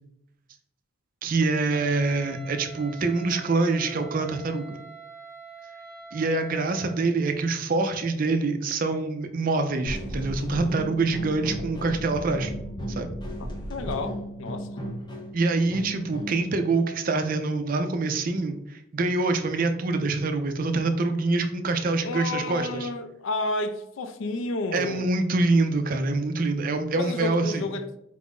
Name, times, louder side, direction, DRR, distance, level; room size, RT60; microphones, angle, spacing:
voice 1, 1.2-4.8 6.1-12.5 13.0-13.1 15.3-22.9 24.7-27.6, right 3 dB, 40° right, 0.4 m, -25 dB
Wind instrument woodwind instrument, 1.7-7.1, right 4 dB, ahead, 1.0 m, -45 dB
sound 1, 9.9-16.5, equal, 20° left, 0.5 m, -35 dB
voice 2, 13.7-14.8 22.0-25.1 26.9-27.9, left 2 dB, 70° left, 0.4 m, -31 dB
4.4 x 2.5 x 3.5 m
head